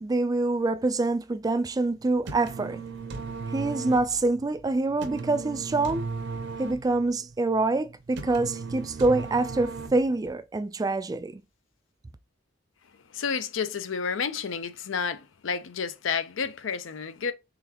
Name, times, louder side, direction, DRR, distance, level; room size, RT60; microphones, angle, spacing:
voice 1, 0.0-2.8 3.5-6.0 6.6-11.4, right 2 dB, 20° right, 0.3 m, -26 dB
sound 1, 2.0-10.3, right 4 dB, 65° right, 0.6 m, -37 dB
voice 2, 13.1-17.3, left 6 dB, 80° left, 0.5 m, -30 dB
3.9 x 3.3 x 2.9 m
head